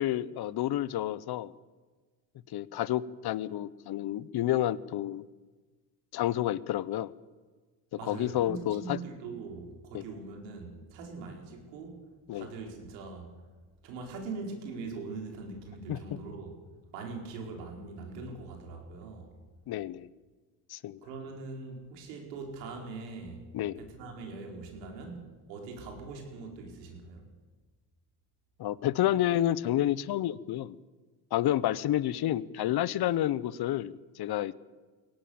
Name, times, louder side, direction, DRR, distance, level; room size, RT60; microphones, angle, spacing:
voice 1, 0.0-1.5 2.5-5.2 6.1-7.1 8.1-9.0 9.9-10.0 12.3-12.5 15.9-16.0 19.7-20.1 20.7-21.0 23.5-23.8 28.6-30.8 31.3-34.5, left 13 dB, 50° left, 19 dB, 1.0 m, -29 dB
voice 2, 8.0-12.0 12.3-13.3 13.8-16.5 16.9-19.3 21.0-23.4 23.8-25.2 25.5-27.3, right 3 dB, 90° right, 2 dB, 4.9 m, -42 dB
23.0 x 18.0 x 7.3 m, 1.3 s
supercardioid pair, 80°, 49 cm